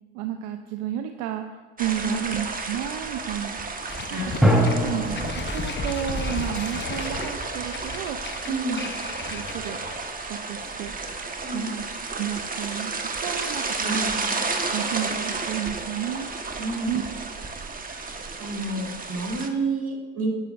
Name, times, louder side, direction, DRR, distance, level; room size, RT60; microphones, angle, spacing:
voice 1, 0.1-1.4 1.8-3.6 4.1-8.2 8.7-8.8 9.3-9.8 10.3-10.9 11.5-11.8 12.1-12.9 13.2-14.2 14.7-16.3 16.9-17.0, right 11 dB, 80° right, 6 dB, 0.8 m, -32 dB
sound 1, 1.8-19.5, right 3 dB, 25° right, 1.4 m, -32 dB
sound 2, 3.9-10.1, left 6 dB, 30° left, 0.9 m, -36 dB
voice 2, 4.1-4.7 8.4-8.8 11.4-11.7 13.8-14.3 16.6-17.0 17.9-18.0 18.4-20.3, right 2 dB, 50° right, -1 dB, 3.9 m, -30 dB
sound 3, 4.4-7.9, equal, ahead, 3.6 m, -25 dB
20.5 x 10.5 x 2.6 m, 1.3 s
supercardioid pair, 75°, 35 cm